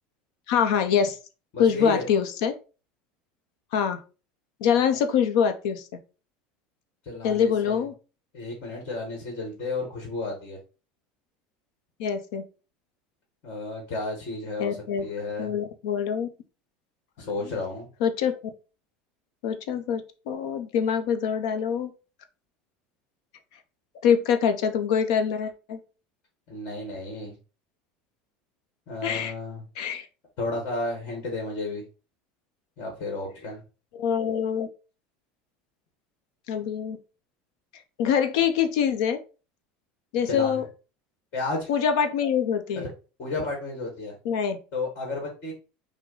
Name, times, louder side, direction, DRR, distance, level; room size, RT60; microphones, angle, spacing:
voice 1, 0.5-1.2 1.6-2.6 3.7-4.0 4.6-5.8 7.2-7.9 12.0-12.4 14.6-15.0 15.4-16.3 18.0-18.4 19.4-21.9 24.0-25.8 29.0-29.3 29.8-30.1 34.0-34.7 36.5-37.0 38.0-39.2 40.1-40.6 41.7-42.9 44.2-44.6, left 7 dB, 70° left, 8 dB, 0.7 m, -24 dB
voice 2, 1.5-2.0 7.0-7.8 8.3-10.6 13.4-15.5 17.2-17.9 26.5-27.4 28.9-29.6 30.4-31.8 32.8-33.6 40.3-40.6 41.3-41.7 42.7-42.9 43.2-44.1 44.7-45.5, left 2 dB, 40° left, 1 dB, 1.6 m, -32 dB
6.0 x 2.2 x 3.8 m, 0.33 s
cardioid pair, 165°, 4 cm